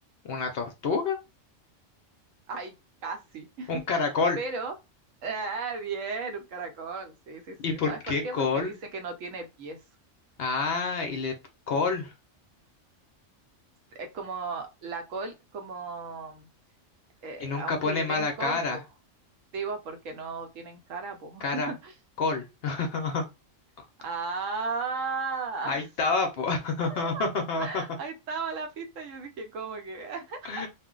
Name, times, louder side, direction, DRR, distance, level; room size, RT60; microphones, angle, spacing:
voice 1, 0.2-1.2 3.7-4.4 7.6-8.7 10.4-11.3 11.7-12.1 17.4-18.8 21.4-21.7 22.2-23.2 25.6-27.8 30.4-30.7, left 4 dB, 60° left, 0.7 m, -28 dB
voice 2, 3.0-4.0 4.4-4.7 5.2-9.8 13.9-16.5 17.2-18.8 19.5-21.9 24.0-25.8 26.4-26.6 26.9-27.3 27.6-30.5, right 4 dB, 80° right, 1.0 m, -35 dB
2.4 x 2.1 x 3.7 m
omnidirectional pair, 1.3 m